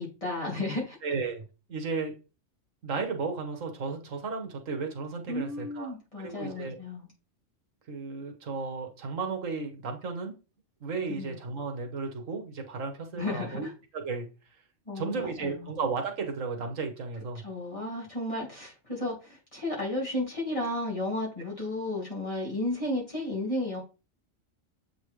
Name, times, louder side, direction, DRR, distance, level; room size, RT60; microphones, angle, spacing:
voice 1, 0.0-1.0 5.3-7.1 11.1-11.4 13.2-13.7 14.9-15.7 17.4-23.8, left 1 dB, 25° left, 2.7 m, -33 dB
voice 2, 1.0-1.4 1.7-2.1 2.8-6.8 7.9-10.3 10.8-13.7 13.9-14.3 15.0-17.4, right 4 dB, 80° right, 1.5 m, -34 dB
7.7 x 4.1 x 3.2 m
omnidirectional pair, 1.3 m